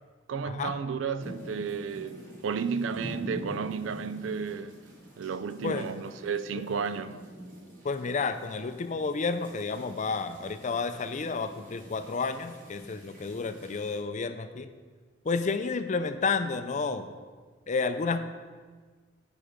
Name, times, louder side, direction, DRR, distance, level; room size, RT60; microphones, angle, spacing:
voice 1, 0.3-4.9 5.2-7.2, right 5 dB, 70° right, 0.4 m, -33 dB
sound 1, 1.2-14.0, equal, 45° right, 2.3 m, -46 dB
voice 2, 7.8-14.7 15.3-17.1 17.7-18.2, left 4 dB, 35° left, 0.4 m, -31 dB
9.5 x 5.2 x 5.1 m
head